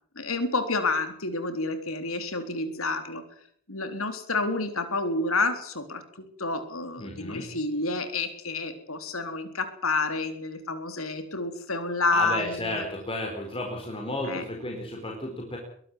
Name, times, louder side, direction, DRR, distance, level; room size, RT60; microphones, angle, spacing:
voice 1, 0.2-3.2 3.7-6.0 6.4-12.8 14.3-14.4, left 3 dB, 90° left, 8 dB, 3.7 m, -29 dB
voice 2, 7.0-7.5 12.1-15.6, left 1 dB, 25° left, 0 dB, 4.5 m, -33 dB
22.5 x 12.5 x 9.8 m, 0.63 s
head